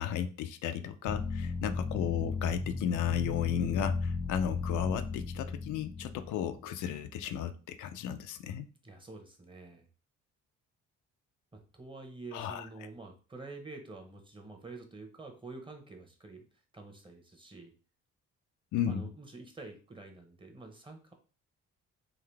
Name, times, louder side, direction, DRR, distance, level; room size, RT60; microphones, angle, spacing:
voice 1, 0.0-8.7 12.3-12.6 18.7-19.1, left 9 dB, 80° left, 8 dB, 0.5 m, -34 dB
sound 1, 1.1-6.8, left 4 dB, 20° left, 0.3 m, -35 dB
voice 2, 8.8-9.8 11.5-16.5 16.7-17.7 18.9-21.1, right 3 dB, 15° right, 4 dB, 1.0 m, -48 dB
3.8 x 2.6 x 3.3 m, 0.36 s
cardioid pair, 90°, 30 cm